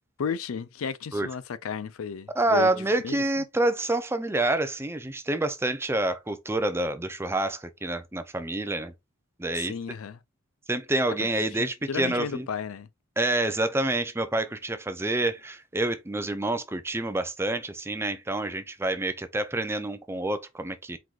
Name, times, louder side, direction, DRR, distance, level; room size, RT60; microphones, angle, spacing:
voice 1, 0.2-2.7 3.0-3.2 9.5-10.2 11.2-12.9, left 6 dB, 85° left, 0.5 m, -34 dB
voice 2, 2.4-8.9 9.4-9.7 10.7-12.5 13.2-21.0, right 2 dB, 10° right, 0.5 m, -27 dB
4.6 x 3.9 x 2.4 m
head